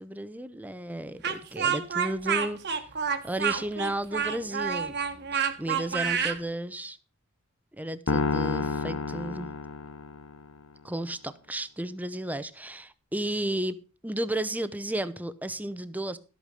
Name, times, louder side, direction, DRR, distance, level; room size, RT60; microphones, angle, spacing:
voice 1, 0.0-2.6 3.2-5.0 5.3-7.0 7.8-9.5 10.8-16.2, right 1 dB, 5° right, 14 dB, 0.7 m, -33 dB
Speech, 1.2-6.4, right 7 dB, 50° right, 1.4 m, -28 dB
sound 1, 8.1-10.5, left 4 dB, 65° left, 0.9 m, -29 dB
12.5 x 8.3 x 5.1 m, 0.35 s
head